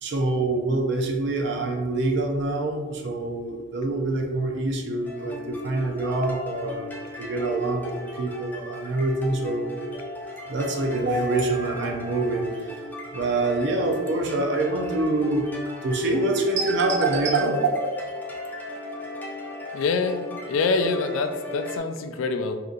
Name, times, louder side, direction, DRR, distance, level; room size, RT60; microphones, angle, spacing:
voice 1, 0.0-6.9 7.2-9.7 10.5-12.7 13.1-15.5 15.8-18.0, right 2 dB, 60° right, 2 dB, 0.5 m, -25 dB
sound 1, 5.1-21.8, left 1 dB, 10° left, 0.4 m, -37 dB
voice 2, 19.7-22.6, left 4 dB, 80° left, 7 dB, 0.3 m, -25 dB
2.8 x 2.4 x 3.7 m, 1.4 s
head